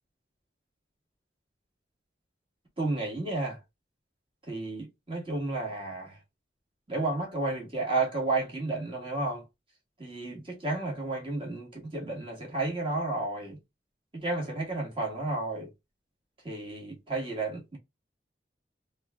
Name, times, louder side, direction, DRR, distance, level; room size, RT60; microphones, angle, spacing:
voice 1, 2.8-3.6 4.5-6.2 6.9-9.4 10.0-13.6 14.1-15.7 16.4-17.8, right 2 dB, 30° right, 1.5 m, -32 dB
3.6 x 2.4 x 3.4 m
head